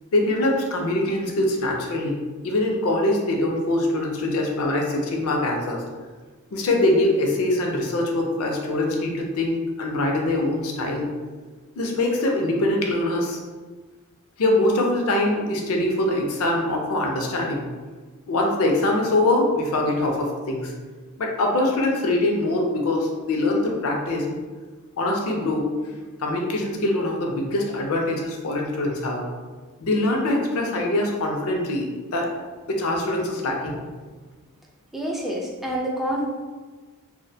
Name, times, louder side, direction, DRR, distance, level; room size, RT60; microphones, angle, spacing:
voice 1, 0.1-2.2 2.4-5.8 6.5-11.1 11.8-13.4 14.4-17.7 18.3-20.7 21.2-24.4 25.0-25.7 26.2-29.2 29.8-32.3 32.7-33.8, left 1 dB, 65° left, 1 dB, 0.5 m, -23 dB
voice 2, 34.9-36.2, right 1 dB, ahead, -3 dB, 0.3 m, -27 dB
2.4 x 2.1 x 2.6 m, 1.4 s
head